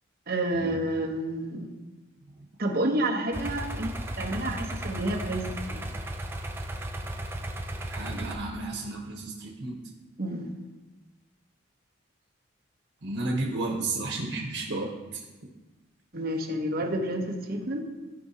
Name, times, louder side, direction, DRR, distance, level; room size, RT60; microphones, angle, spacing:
voice 1, 0.3-1.7 2.6-5.8 10.2-10.5 16.1-17.8, right 1 dB, 50° right, 1 dB, 1.0 m, -29 dB
sound 1, 3.3-8.4, right 1 dB, 10° right, 0.4 m, -35 dB
voice 2, 7.9-9.8 13.0-15.3, right 2 dB, 85° right, -1 dB, 1.1 m, -33 dB
14.0 x 4.9 x 2.8 m, 1.2 s
head